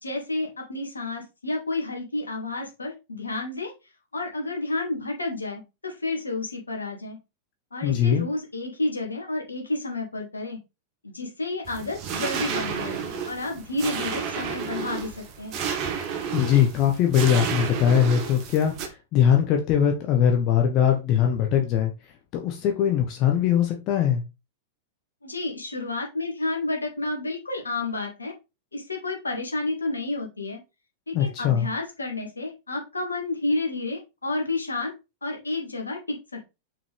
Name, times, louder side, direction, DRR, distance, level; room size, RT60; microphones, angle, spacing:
voice 1, 0.0-3.7 4.1-7.2 7.7-10.6 11.0-15.6 25.2-28.3 28.7-30.6 31.1-34.9 35.2-36.5, left 2 dB, 80° left, 2.1 m, -30 dB
voice 2, 7.8-8.3 16.3-21.9 22.3-24.2 31.1-31.7, left 9 dB, 40° left, 1.4 m, -21 dB
sound 1, 11.7-18.9, right 7 dB, 40° right, 1.6 m, -31 dB
5.8 x 5.5 x 3.5 m
figure-of-eight pair, 95°, 0 cm